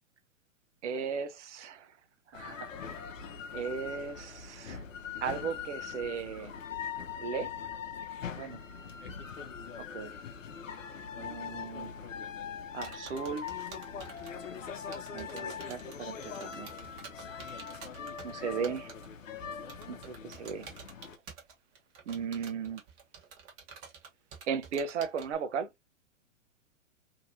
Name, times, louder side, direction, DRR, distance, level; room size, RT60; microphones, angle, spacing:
voice 1, 0.8-1.9 2.3-3.0 3.5-4.8 5.2-6.5 7.2-7.5 8.3-8.6 9.8-10.1 11.2-12.1 12.7-13.5 15.1-16.7 18.2-18.9 19.9-20.7 22.1-22.8 24.5-25.7, right 6 dB, 60° right, 0.8 m, -36 dB
sound 1, 2.3-21.2, left 7 dB, 70° left, 0.7 m, -42 dB
sound 2, 12.8-14.3 14.8-18.3 18.6-19.1 19.7-25.4, right 6 dB, 35° right, 1.2 m, -48 dB
2.8 x 2.7 x 2.7 m
figure-of-eight pair, 115°, 40 cm